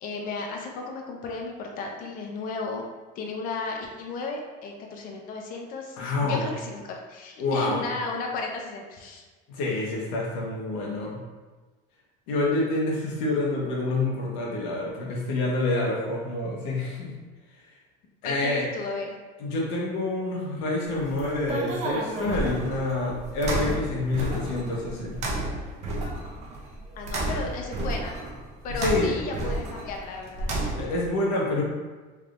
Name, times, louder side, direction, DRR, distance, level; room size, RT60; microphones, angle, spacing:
voice 1, 0.0-2.9 3.2-9.2 18.2-19.1 27.0-28.2 28.6-30.5, left 3 dB, 45° left, 1 dB, 0.6 m, -34 dB
voice 2, 6.0-6.5 7.4-7.9 9.5-11.2 12.3-17.1 18.2-18.6 19.4-25.2 28.7-29.1 30.8-31.6, left 2 dB, 80° left, -3 dB, 0.9 m, -27 dB
sound 1, 20.9-31.1, right 1 dB, 35° right, 0.6 m, -32 dB
3.4 x 3.2 x 2.5 m, 1.3 s
cardioid pair, 155°, 20 cm